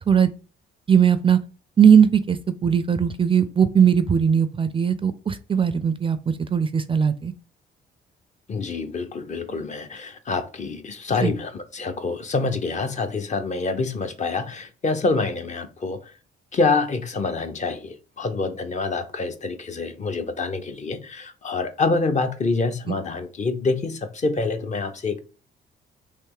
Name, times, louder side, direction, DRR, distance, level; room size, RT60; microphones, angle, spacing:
voice 1, 0.9-1.4 1.8-2.4 2.6-7.3 11.2-11.3 22.9-23.0, right 7 dB, 25° right, 0.4 m, -19 dB
voice 2, 8.5-16.1 16.5-25.2, left 3 dB, 35° left, 0.7 m, -26 dB
3.3 x 3.1 x 4.7 m
cardioid pair, 90°, 20 cm